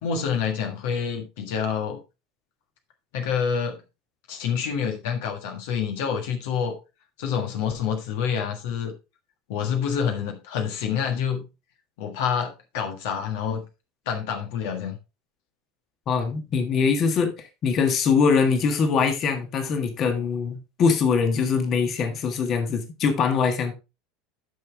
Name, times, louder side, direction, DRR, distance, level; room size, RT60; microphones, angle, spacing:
voice 1, 0.0-2.0 3.1-3.8 4.3-6.8 7.2-8.9 9.5-11.4 12.0-13.6 14.0-15.0, left 7 dB, 60° left, 1.5 m, -27 dB
voice 2, 16.1-23.7, left 5 dB, 40° left, 1.6 m, -23 dB
10.0 x 6.1 x 3.4 m
figure-of-eight pair, 75°, 0 cm